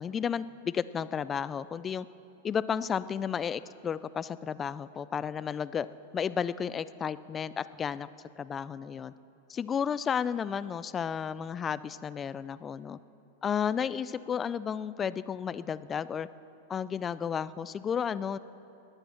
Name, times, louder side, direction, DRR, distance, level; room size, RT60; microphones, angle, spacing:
voice 1, 0.0-2.1 2.4-5.9 6.1-8.1 8.4-9.1 9.5-13.0 13.4-16.3 16.7-18.4, left 7 dB, 25° left, 16 dB, 0.4 m, -32 dB
21.5 x 9.0 x 5.8 m, 2.8 s
hypercardioid pair, 120°, 0 cm